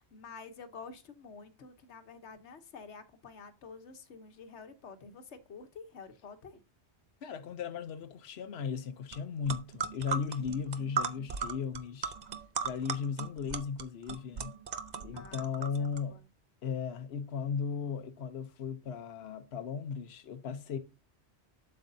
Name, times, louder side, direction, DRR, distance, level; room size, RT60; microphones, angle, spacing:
voice 1, 0.0-6.6 15.1-16.3, left 5 dB, 90° left, 1.3 m, -49 dB
voice 2, 7.2-12.1 12.6-14.5 15.0-16.2 16.6-20.8, left 6 dB, 70° left, 1.0 m, -36 dB
sound 1, 9.1-9.2 9.4-16.0, right 5 dB, 45° right, 0.7 m, -37 dB
7.9 x 7.7 x 2.7 m
omnidirectional pair, 1.1 m